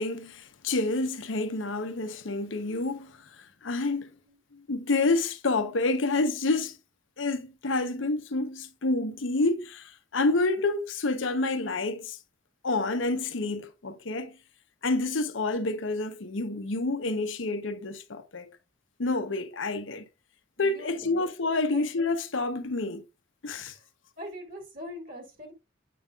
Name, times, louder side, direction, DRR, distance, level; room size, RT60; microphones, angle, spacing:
voice 1, 0.0-4.1 4.5-6.8 7.2-12.2 12.6-14.3 14.8-18.5 19.0-20.0 20.6-23.0 23.4-23.7, left 2 dB, 75° left, 0.8 m, -28 dB
voice 2, 20.6-21.3 21.7-21.9 23.7-23.9 24.2-25.5, equal, 45° right, 2.3 m, -42 dB
8.5 x 5.3 x 2.3 m
head